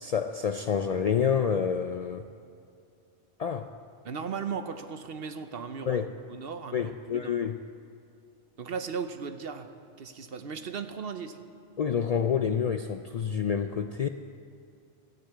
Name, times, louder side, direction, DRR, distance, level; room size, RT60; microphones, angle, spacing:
voice 1, 0.0-2.3 3.4-3.7 5.9-6.1 6.7-7.6 11.8-14.1, left 7 dB, 80° left, 8 dB, 0.3 m, -28 dB
voice 2, 4.0-7.3 8.6-9.7 10.0-11.4, right 6 dB, 60° right, 8 dB, 1.0 m, -37 dB
13.0 x 10.0 x 8.3 m, 2.5 s
omnidirectional pair, 1.2 m